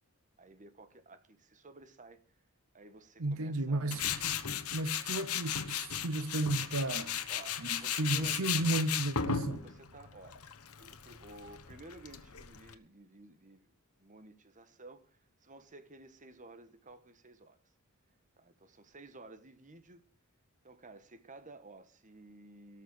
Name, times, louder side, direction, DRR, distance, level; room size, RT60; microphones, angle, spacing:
voice 1, 0.4-2.2 2.7-4.4 7.3-8.4 9.6-10.4 10.8-13.7 14.0-17.6 18.4-20.0 20.6-22.8, right 2 dB, 35° right, 1.4 m, -54 dB
voice 2, 3.2-7.2 7.6-9.6, right 2 dB, 65° right, 0.8 m, -34 dB
Tools, 3.9-12.7, left 8 dB, 80° left, 1.2 m, -36 dB
18.0 x 6.7 x 6.6 m
head